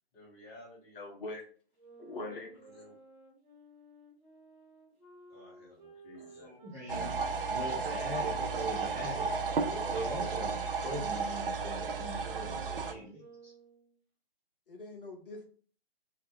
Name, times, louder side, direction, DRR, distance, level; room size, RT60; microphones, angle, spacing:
voice 1, 0.1-1.4 2.0-2.9 5.3-6.5, left 1 dB, 15° left, -4 dB, 1.0 m, -54 dB
voice 2, 0.9-1.4 2.0-2.5 7.6-7.8 9.6-10.3 14.7-15.4, left 2 dB, 60° left, 1 dB, 0.7 m, -43 dB
sound 1, 1.8-7.6 8.3-13.9, right 2 dB, 35° right, 1.1 m, -56 dB
voice 3, 6.2-7.1 7.5-9.4 9.9-10.5 10.8-13.5, right 1 dB, 10° right, -8 dB, 0.6 m, -41 dB
sound 2, 6.9-12.9, right 4 dB, 60° right, 0.5 m, -33 dB
2.3 x 2.0 x 3.5 m, 0.44 s
figure-of-eight pair, 130°, 31 cm